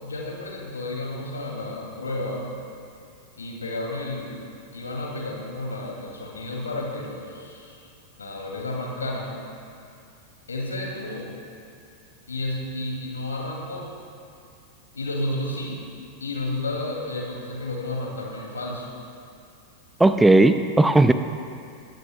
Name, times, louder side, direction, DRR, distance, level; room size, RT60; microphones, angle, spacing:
voice 1, 0.0-2.5 3.4-4.4 4.7-7.9 8.2-9.3 10.5-11.3 12.3-14.0 14.9-15.8 16.2-19.0, left 2 dB, 75° left, -1 dB, 2.5 m, -31 dB
voice 2, 20.0-21.1, right 2 dB, 5° right, 10 dB, 0.5 m, -16 dB
19.5 x 16.0 x 2.3 m, 2.4 s
figure-of-eight pair, 90°, 0 cm